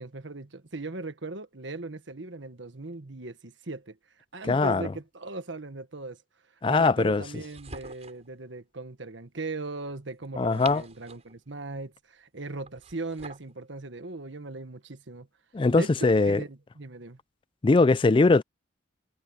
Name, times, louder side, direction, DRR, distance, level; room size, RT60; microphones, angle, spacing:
voice 1, 0.0-4.0 4.3-6.2 6.7-15.3 15.7-17.2, right 3 dB, 70° right, 1.4 m, -38 dB
voice 2, 4.5-4.8 6.6-7.2 10.4-10.8 15.5-16.4 17.6-18.4, left 3 dB, 25° left, 0.3 m, -21 dB
sound 1, 7.3-8.3 10.2-11.4 12.6-13.5, right 4 dB, 35° right, 6.8 m, -45 dB
head